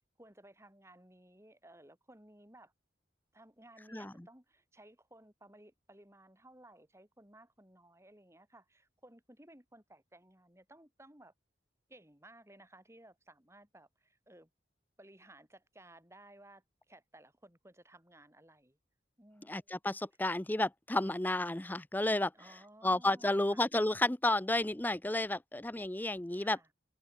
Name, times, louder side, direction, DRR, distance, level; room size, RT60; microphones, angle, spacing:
voice 1, 0.2-2.7 3.3-11.3 11.9-14.5 15.0-18.8 19.2-19.8 22.3-23.6 26.4-26.7, right 1 dB, 15° right, 7.8 m, -58 dB
voice 2, 3.9-4.3 19.5-22.3 22.8-26.6, left 2 dB, 10° left, 0.6 m, -32 dB
head